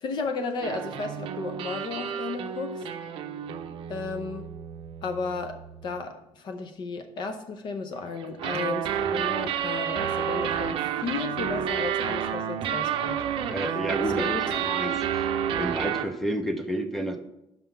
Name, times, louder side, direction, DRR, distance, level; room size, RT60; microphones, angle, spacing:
voice 1, 0.0-2.8 3.9-4.4 5.0-5.6 5.8-13.2 14.0-14.4, left 4 dB, 50° left, 7 dB, 0.6 m, -34 dB
sound 1, 0.6-6.0 8.2-16.1, right 9 dB, 60° right, 0.6 m, -30 dB
voice 2, 13.5-15.3 15.6-17.2, right 1 dB, ahead, 6 dB, 0.6 m, -31 dB
5.8 x 5.6 x 5.7 m, 0.86 s
cardioid pair, 175°, 10 cm